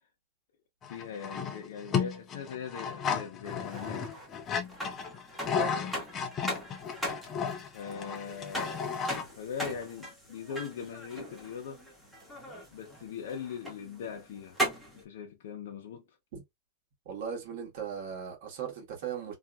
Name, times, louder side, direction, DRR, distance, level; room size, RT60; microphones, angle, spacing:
sound 1, 0.8-9.3, left 6 dB, 25° left, 0.5 m, -34 dB
voice 1, 0.9-4.1 5.5-5.9 7.7-8.8 9.4-11.8 12.7-14.6 14.9-16.2, left 7 dB, 75° left, 0.6 m, -41 dB
sound 2, 3.4-15.0, equal, 5° right, 1.0 m, -40 dB
voice 2, 17.0-19.3, right 7 dB, 60° right, 1.3 m, -38 dB
2.7 x 2.4 x 2.2 m
supercardioid pair, 150°, 0 cm